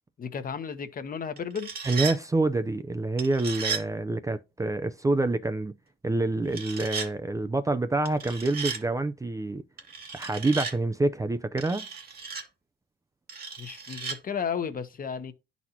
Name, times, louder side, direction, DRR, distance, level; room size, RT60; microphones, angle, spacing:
voice 1, 0.2-1.7 13.6-15.3, left 6 dB, 45° left, 0.9 m, -33 dB
sound 1, 1.4-2.2 3.2-3.9 6.5-7.1 8.1-8.8 9.8-10.8 11.6-12.4 13.3-14.2, right 5 dB, 50° right, 2.0 m, -35 dB
voice 2, 1.8-5.8 6.0-9.6 10.1-11.9, right 2 dB, 15° right, 0.5 m, -27 dB
11.0 x 4.1 x 2.9 m
cardioid pair, 90°, 20 cm